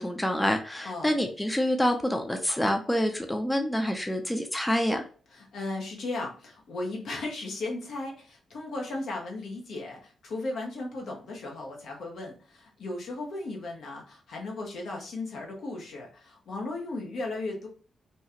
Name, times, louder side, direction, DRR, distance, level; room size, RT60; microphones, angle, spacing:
voice 1, 0.0-5.0, equal, 10° left, 4 dB, 0.6 m, -27 dB
voice 2, 5.3-17.7, left 2 dB, 70° left, 0 dB, 1.0 m, -36 dB
2.8 x 2.4 x 2.7 m, 0.40 s
hypercardioid pair, 40°, 0 cm